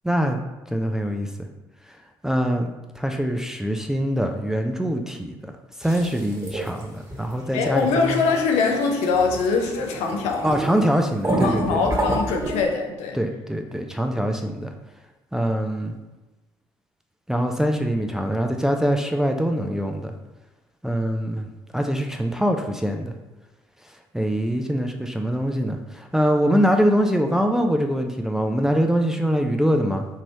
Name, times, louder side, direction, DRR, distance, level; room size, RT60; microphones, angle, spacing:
voice 1, 0.0-0.4 0.7-1.3 2.2-5.4 5.8-8.2 10.4-11.8 13.1-14.7 15.3-15.9 17.3-20.1 20.8-21.5 21.7-23.1 24.1-30.1, equal, 5° right, 4 dB, 0.4 m, -23 dB
sound 1, 5.8-6.8 7.1-7.3 7.6-12.7, right 1 dB, 25° right, 1.4 m, -29 dB
voice 2, 7.5-10.4 11.4-13.2, left 4 dB, 60° left, 2 dB, 0.7 m, -23 dB
4.6 x 3.0 x 2.7 m, 1.1 s
figure-of-eight pair, 50°, 13 cm